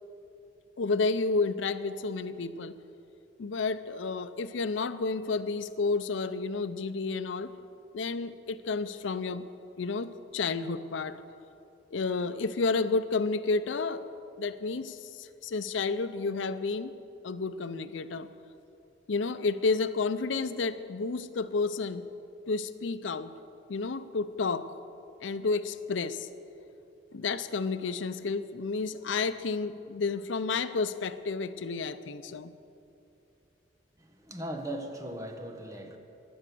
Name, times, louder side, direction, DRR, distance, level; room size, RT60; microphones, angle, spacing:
voice 1, 0.8-2.8 3.4-7.5 7.9-9.4 9.8-11.2 11.9-14.1 14.4-16.9 17.2-18.3 19.1-22.0 22.5-23.3 23.7-24.7 25.2-26.3 27.1-32.5, left 4 dB, 80° left, 13 dB, 0.6 m, -31 dB
voice 2, 34.0-36.0, right 1 dB, 15° right, 4 dB, 1.2 m, -38 dB
16.0 x 11.0 x 6.8 m, 2.7 s
head